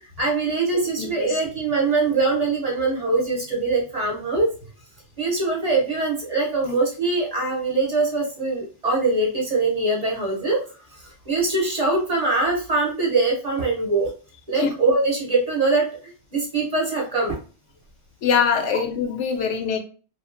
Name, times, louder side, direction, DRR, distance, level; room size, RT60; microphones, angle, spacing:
voice 1, 0.2-4.5 5.2-10.6 10.9-14.1 14.5-17.4, right 3 dB, 40° right, 0.7 m, -23 dB
voice 2, 1.0-1.3 14.6-14.7 18.2-19.8, left 6 dB, 90° left, 0.9 m, -23 dB
2.8 x 2.4 x 2.5 m
omnidirectional pair, 1.2 m